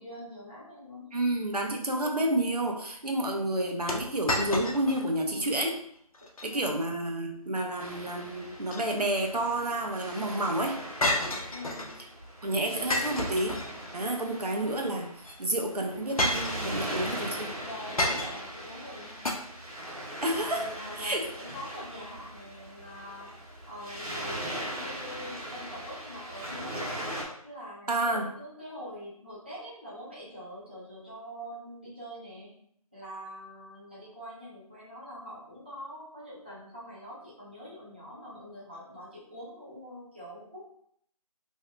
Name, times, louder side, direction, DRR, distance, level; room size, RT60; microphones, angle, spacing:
voice 1, 0.0-1.1 6.5-6.9 11.5-12.0 17.6-19.3 20.2-23.4 23.7-27.0 27.4-32.6 32.9-40.7, equal, 15° right, -10 dB, 0.6 m, -44 dB
voice 2, 1.1-5.8 6.4-10.8 12.4-13.6 13.9-15.1 15.4-17.5 20.2-20.7 21.0-21.2 27.9-28.3, right 1 dB, 85° right, 1 dB, 0.7 m, -30 dB
sound 1, 3.9-5.1 5.4-5.5 6.1-6.5 8.4-9.3 11.0-12.0 12.9-14.1 15.2-15.3 16.2-17.0 18.0-18.6 19.2-19.3, left 1 dB, 65° left, 0.6 m, -30 dB
Waves surf, 7.8-27.2, right 1 dB, 70° right, 1.1 m, -40 dB
2.7 x 2.3 x 3.3 m, 0.68 s
figure-of-eight pair, 165°, 19 cm